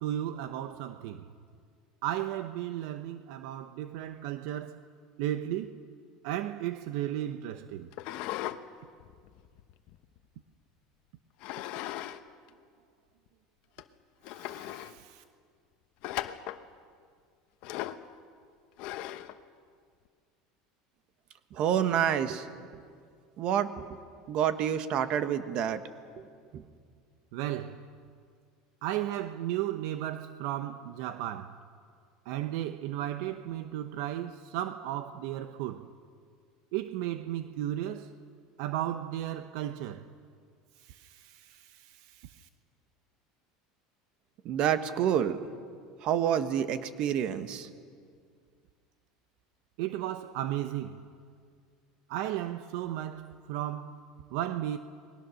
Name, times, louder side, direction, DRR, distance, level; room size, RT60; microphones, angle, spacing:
voice 1, 0.0-1.2 2.0-4.8 5.2-5.8 6.2-7.9 14.4-15.2 27.3-27.9 28.8-31.6 32.3-35.9 36.7-38.1 38.6-40.1 40.8-42.5 49.8-51.1 52.1-54.0 54.3-54.8, right 12 dB, 70° right, 0.8 m, -35 dB
sound 1, 7.9-8.6 9.0-10.4 11.4-12.2 12.5-12.6 13.3-13.4 13.8-13.9 14.2-14.9 16.0-16.6 17.6-18.1 18.8-19.4, left 14 dB, 55° left, 1.0 m, -38 dB
voice 2, 21.5-22.5 23.4-23.9 24.3-25.8 26.5-26.6 44.4-45.4 46.0-47.7, right 9 dB, 45° right, 1.4 m, -28 dB
29.5 x 21.0 x 6.5 m
cardioid pair, 150°, 2 cm